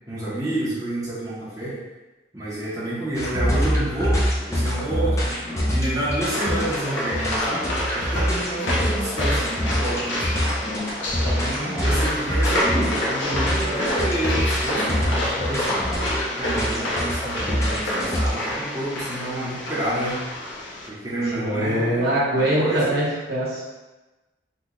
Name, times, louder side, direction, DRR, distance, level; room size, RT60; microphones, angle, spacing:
voice 1, 0.1-1.8 2.3-4.2 4.5-5.4 5.7-10.4 11.2-15.8 16.4-20.2 20.9-22.3 22.5-23.0, right 1 dB, 20° right, -10 dB, 0.7 m, -29 dB
sound 1, 3.1-18.3, equal, 15° left, 0.5 m, -25 dB
sound 2, 6.2-20.9, left 1 dB, 80° left, 0.7 m, -28 dB
voice 2, 21.3-23.6, right 1 dB, 55° right, -6 dB, 0.9 m, -23 dB
2.9 x 2.2 x 3.7 m, 1.1 s
head